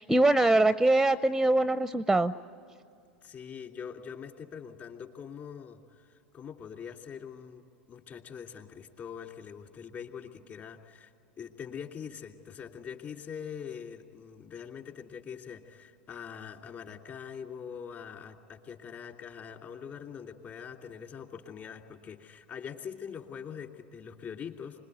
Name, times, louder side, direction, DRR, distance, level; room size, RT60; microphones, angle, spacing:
voice 1, 0.0-2.3, right 2 dB, 5° right, 14 dB, 0.5 m, -23 dB
voice 2, 3.2-11.1 11.4-24.8, left 7 dB, 40° left, 3 dB, 2.9 m, -43 dB
26.0 x 21.0 x 9.3 m, 2.4 s
hypercardioid pair, 90°, 5 cm